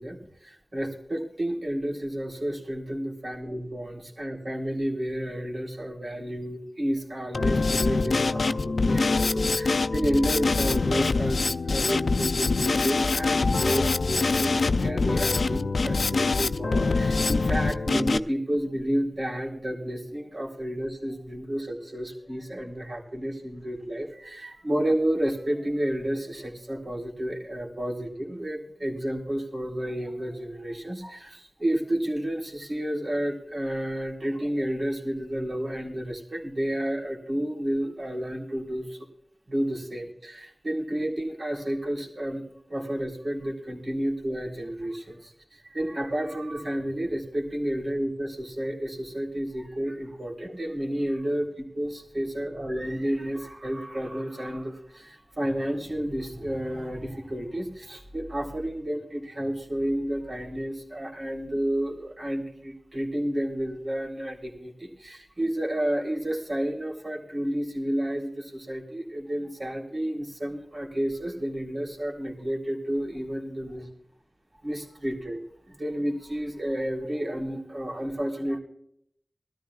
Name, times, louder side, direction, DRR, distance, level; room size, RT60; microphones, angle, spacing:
voice 1, 0.0-39.1 39.5-42.4 42.7-73.9 74.6-75.4 75.7-78.6, equal, 65° right, 0 dB, 3.5 m, -31 dB
Drum kit, 7.3-18.2, left 3 dB, 90° left, 0.4 m, -24 dB
20.5 x 13.5 x 2.4 m, 0.71 s
wide cardioid pair, 50°, 0 cm